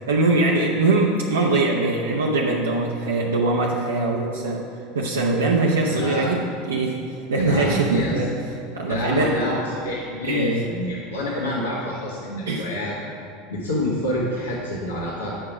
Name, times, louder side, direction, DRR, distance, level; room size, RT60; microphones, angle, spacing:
voice 1, 0.1-4.7 4.9-8.3 8.7-9.4 10.2-10.7 12.5-12.7, right 2 dB, 80° right, -3 dB, 0.7 m, -22 dB
voice 2, 5.9-6.3 7.4-8.2 8.9-12.9 13.5-15.3, left 1 dB, 80° left, -5 dB, 1.2 m, -27 dB
8.8 x 5.5 x 5.0 m, 2.6 s
figure-of-eight pair, 80°, 0 cm